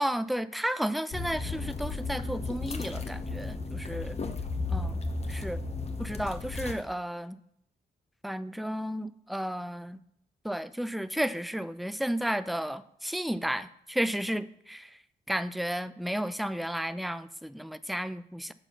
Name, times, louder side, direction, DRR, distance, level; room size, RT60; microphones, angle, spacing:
voice 1, 0.0-4.2 4.7-5.0 5.3-5.6 6.0-7.4 8.2-10.0 10.4-15.0 15.3-18.5, equal, ahead, 14 dB, 0.3 m, -33 dB
sound 1, 1.1-6.7, left 3 dB, 35° left, 0.9 m, -34 dB
7.4 x 4.1 x 5.4 m, 0.73 s
cardioid pair, 60°, 19 cm